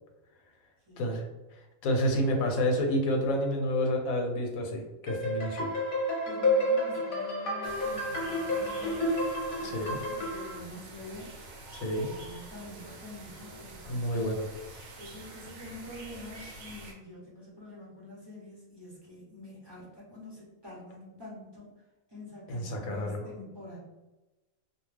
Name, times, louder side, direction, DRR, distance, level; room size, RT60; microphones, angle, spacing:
voice 1, 0.9-1.2 6.2-9.2 9.5-11.3 12.0-14.3 15.0-21.7 22.1-23.8, left 1 dB, 25° right, -6 dB, 0.6 m, -46 dB
voice 2, 1.8-5.7 9.6-10.0 11.7-12.1 13.9-14.4 22.5-23.2, equal, 85° left, 3 dB, 1.0 m, -29 dB
sound 1, 5.1-10.6, left 1 dB, 45° left, 0.8 m, -30 dB
sound 2, 7.6-16.9, right 2 dB, 65° right, 0.9 m, -47 dB
2.3 x 2.2 x 3.2 m, 1.1 s
omnidirectional pair, 1.4 m